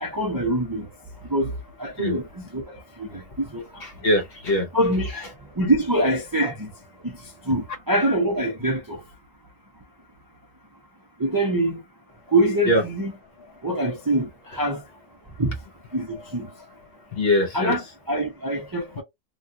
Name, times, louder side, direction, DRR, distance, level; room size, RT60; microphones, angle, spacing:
voice 1, 0.0-0.9 1.3-1.5 1.8-3.2 3.5-3.6 4.7-5.1 5.6-6.7 7.0-7.1 7.5-9.0 11.2-11.8 12.3-13.1 13.6-14.8 15.4-15.5 15.9-16.5 17.5-19.0, right 1 dB, 25° right, 0.4 m, -24 dB
voice 2, 3.8-4.7 6.4-6.5 12.7-12.8 17.1-17.8, left 1 dB, 55° left, 0.8 m, -22 dB
3.0 x 2.3 x 2.6 m
omnidirectional pair, 1.4 m